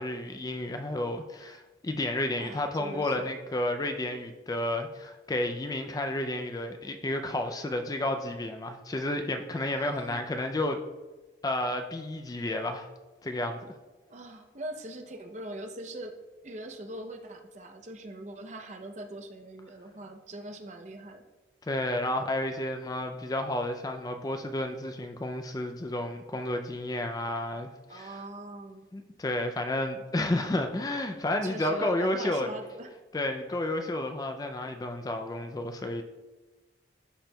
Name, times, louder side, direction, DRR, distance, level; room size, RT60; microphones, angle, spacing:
voice 1, 0.0-10.8 11.4-12.9 13.2-13.7 21.6-28.2 28.9-32.5 33.1-36.0, left 1 dB, 20° left, 6 dB, 0.3 m, -31 dB
voice 2, 2.4-3.3 9.6-10.2 14.1-16.2 16.4-21.2 27.9-28.9 31.3-32.9, right 1 dB, 40° right, 4 dB, 0.6 m, -41 dB
12.5 x 4.4 x 2.2 m, 1.2 s
head